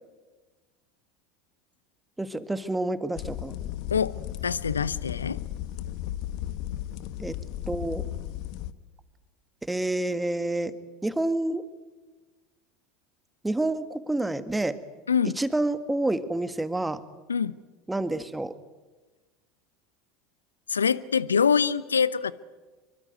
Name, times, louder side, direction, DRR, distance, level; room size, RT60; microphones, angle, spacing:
voice 1, 2.2-3.6 7.2-7.4 7.7-8.1 9.6-10.7 11.0-11.6 13.4-14.8 15.4-17.0 17.9-18.5, right 2 dB, 10° right, 12 dB, 1.8 m, -28 dB
sound 1, 3.1-8.7, left 13 dB, 55° left, 1.1 m, -35 dB
voice 2, 4.4-5.4 15.1-15.4 17.3-17.5 20.7-22.3, left 6 dB, 80° left, 19 dB, 0.8 m, -24 dB
26.0 x 23.5 x 9.3 m, 1.3 s
figure-of-eight pair, 75°, 0 cm